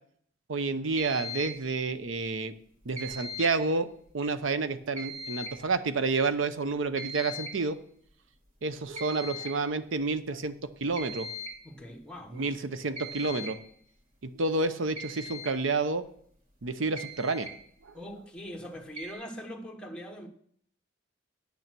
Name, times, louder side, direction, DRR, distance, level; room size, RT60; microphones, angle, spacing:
voice 1, 0.5-2.5 2.9-3.9 4.1-7.8 8.6-10.5 10.8-11.3 12.3-13.6 14.2-16.0 16.6-17.5, right 3 dB, 75° right, 0.7 m, -29 dB
sound 1, 1.0-1.7 2.9-3.7 5.0-5.7 7.0-7.6 9.0-9.6 11.0-11.6 13.0-13.6 15.0-15.6 16.6-16.7 17.0-17.5 19.0-19.1, left 1 dB, 40° right, 2.4 m, -39 dB
voice 2, 11.6-12.5 13.3-13.4 17.9-20.3, equal, 5° left, 1.1 m, -42 dB
9.5 x 6.8 x 6.0 m
head